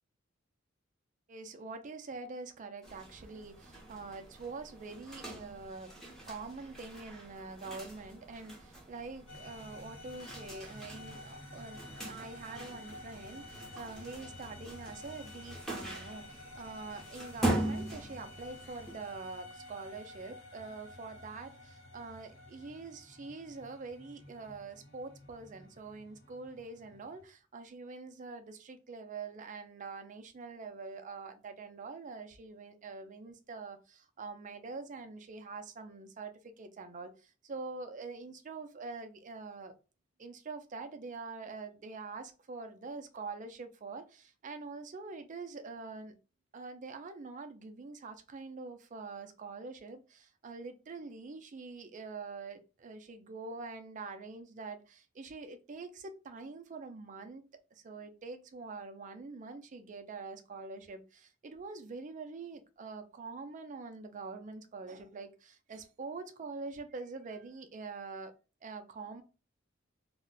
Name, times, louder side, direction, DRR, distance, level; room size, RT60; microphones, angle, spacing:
voice 1, 1.3-5.9 6.3-39.7 40.2-46.1 46.5-68.3 68.6-69.2, right 4 dB, 40° right, 0.4 m, -45 dB
sound 1, 2.8-18.9, right 1 dB, ahead, 0.7 m, -41 dB
sound 2, 9.3-27.2, left 2 dB, 65° left, 0.8 m, -51 dB
2.4 x 2.1 x 3.8 m
head